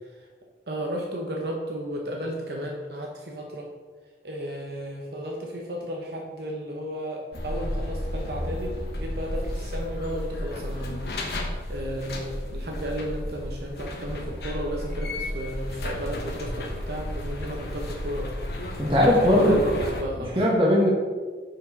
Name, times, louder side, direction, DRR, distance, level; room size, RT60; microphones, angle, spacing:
voice 1, 0.7-3.7 4.2-18.3 19.0-20.3, equal, 65° right, 0 dB, 0.8 m, -34 dB
sound 1, 7.3-20.0, left 1 dB, 65° left, 1.0 m, -33 dB
voice 2, 18.8-19.6 20.2-20.9, left 1 dB, 30° right, -4 dB, 1.1 m, -19 dB
6.1 x 4.7 x 4.5 m, 1.4 s
head